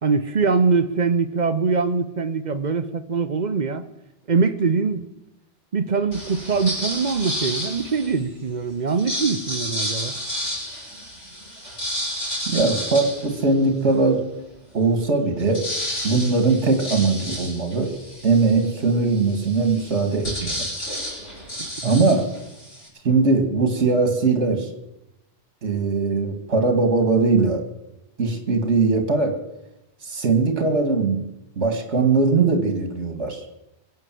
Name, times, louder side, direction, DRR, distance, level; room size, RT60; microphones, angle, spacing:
voice 1, 0.0-3.8 4.3-5.1 5.7-10.1 21.6-21.9, right 4 dB, 40° right, 0.9 m, -23 dB
sound 1, 6.1-8.3 8.9-14.0 14.5-14.6 14.9-22.9, equal, 85° left, 6.7 m, -31 dB
voice 2, 12.5-14.2 14.7-15.6 16.0-17.9 18.2-20.7 21.8-22.3 23.0-24.7 25.6-27.6 28.2-29.4 30.0-31.3 31.6-33.4, right 3 dB, 70° right, 2.2 m, -20 dB
22.0 x 8.2 x 7.6 m
omnidirectional pair, 1.2 m